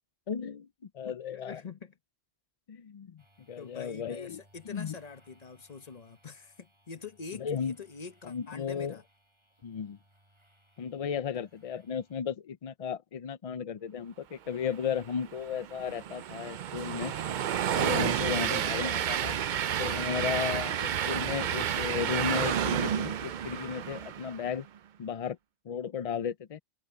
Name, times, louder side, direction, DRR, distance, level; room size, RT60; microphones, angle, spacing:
voice 1, 0.3-0.7 0.9-1.6 2.7-3.2 3.5-4.4 4.7-5.0 7.4-7.7 8.2-9.0 9.6-10.0 10.8-17.1 17.8-19.4 19.8-24.7 25.0-25.4 25.7-26.6, left 7 dB, 60° left, 0.3 m, -34 dB
voice 2, 1.0-1.9 3.6-9.0, left 5 dB, 35° left, 1.0 m, -45 dB
sound 1, 3.2-12.2, right 1 dB, 25° right, 6.3 m, -66 dB
Train, 15.1-24.5, right 9 dB, 55° right, 0.5 m, -31 dB
omnidirectional pair, 1.2 m